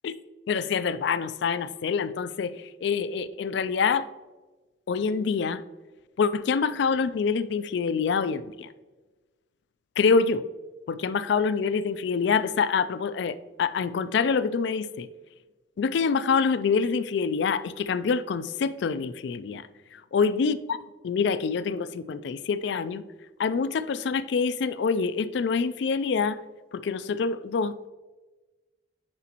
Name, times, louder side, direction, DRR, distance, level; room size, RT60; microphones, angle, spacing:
voice 1, 0.5-4.1 4.9-5.6 6.2-8.7 10.0-10.4 10.9-15.1 15.8-19.6 20.1-20.8 21.0-23.0 23.4-26.4 26.7-27.7, left 5 dB, 65° left, 15 dB, 0.3 m, -26 dB
9.5 x 5.0 x 2.9 m, 1.2 s
head